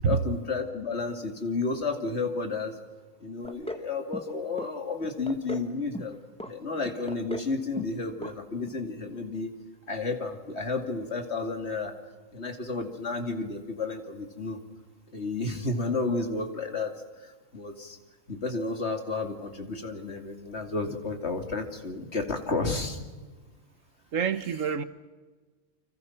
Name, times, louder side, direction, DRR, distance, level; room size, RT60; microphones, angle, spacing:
voice 1, 0.0-2.8 3.2-6.2 6.5-9.5 9.9-11.9 12.3-14.6 15.1-18.0 18.3-23.1, left 3 dB, 50° left, 2.8 m, -32 dB
sound 1, 3.4-3.9 4.1-4.7 5.0-5.7 5.9-6.5 6.8-7.5 7.8-8.0 8.2-8.3 8.7-8.8, left 1 dB, 5° left, 1.5 m, -38 dB
voice 2, 24.1-24.8, right 7 dB, 70° right, 1.4 m, -26 dB
29.5 x 26.0 x 5.9 m
omnidirectional pair, 1.4 m